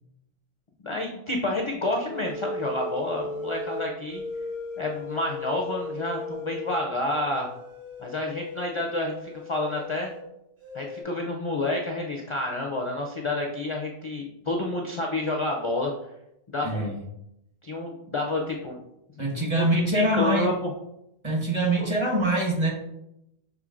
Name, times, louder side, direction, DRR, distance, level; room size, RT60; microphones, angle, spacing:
voice 1, 0.8-4.2 4.8-7.5 8.0-10.1 10.7-15.9 16.5-16.9 17.6-18.8 19.5-20.7 21.8-21.9, left 2 dB, 45° left, 1 dB, 0.4 m, -29 dB
sound 1, 2.1-10.2 10.6-11.0, left 3 dB, 55° right, 1.5 m, -37 dB
voice 2, 16.6-16.9 19.2-20.5 21.2-22.7, right 1 dB, 30° right, -1 dB, 1.0 m, -24 dB
6.3 x 3.2 x 2.4 m, 0.83 s
omnidirectional pair, 1.1 m